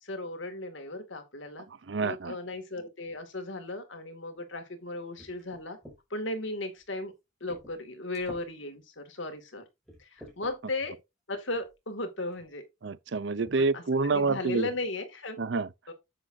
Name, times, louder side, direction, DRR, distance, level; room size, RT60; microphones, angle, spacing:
voice 1, 0.0-1.7 2.0-5.8 6.1-7.1 7.4-9.6 10.0-11.0 11.3-12.6 13.6-13.8 14.1-15.4 15.9-16.0, left 2 dB, 70° left, 2.3 m, -36 dB
voice 2, 1.9-2.3 12.8-14.7 15.4-15.7, right 4 dB, 60° right, 0.6 m, -27 dB
sound 1, 5.2-6.0 6.7-6.9 7.5-7.8 8.1-8.5 9.1-9.2 9.8-10.5 11.6-11.8 12.3-12.5 13.4-13.6 14.0-14.1 14.4-14.8, equal, ahead, 5.3 m, -50 dB
9.8 x 8.1 x 2.7 m
head